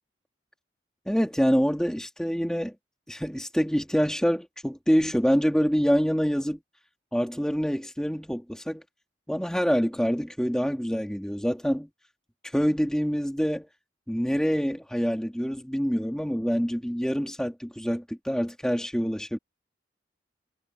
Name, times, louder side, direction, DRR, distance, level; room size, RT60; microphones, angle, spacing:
voice 1, 1.1-2.7 3.1-6.6 7.1-8.8 9.3-11.9 12.5-13.7 14.1-19.4, equal, 5° left, 2.7 m, -26 dB
head